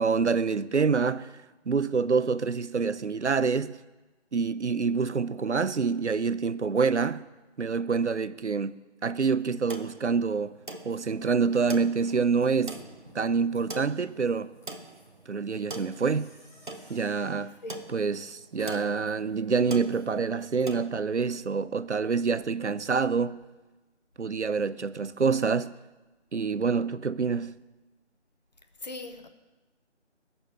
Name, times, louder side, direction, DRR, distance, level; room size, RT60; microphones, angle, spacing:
voice 1, 0.0-1.3 1.7-3.8 4.3-7.3 7.6-10.6 10.8-12.8 13.1-14.6 15.3-16.3 16.9-17.6 17.9-23.4 24.2-25.8 26.3-27.6, right 5 dB, 70° right, 0.8 m, -27 dB
sound 1, 9.4-20.9, right 2 dB, 45° right, 0.9 m, -43 dB
sound 2, 10.8-20.6, left 1 dB, 15° left, 1.7 m, -53 dB
voice 2, 28.8-29.3, left 2 dB, 35° left, 1.1 m, -39 dB
19.5 x 7.1 x 9.0 m
figure-of-eight pair, 170°, 36 cm